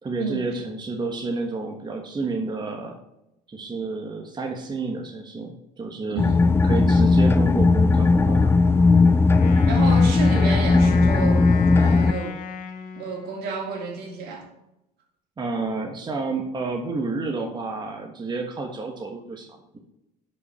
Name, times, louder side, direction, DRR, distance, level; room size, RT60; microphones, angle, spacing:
voice 1, 0.0-3.0 3.5-6.2 6.6-8.6 15.4-19.8, right 3 dB, 25° right, 2 dB, 1.4 m, -30 dB
voice 2, 6.1-6.5 9.6-11.5 11.8-12.4 12.9-14.5, right 4 dB, 65° right, 2 dB, 2.7 m, -31 dB
sound 1, 6.2-12.1, left 3 dB, 15° left, 0.5 m, -17 dB
Wind instrument woodwind instrument, 9.3-13.7, left 6 dB, 50° left, 1.5 m, -35 dB
10.5 x 5.6 x 4.3 m, 0.89 s
supercardioid pair, 100°, 18 cm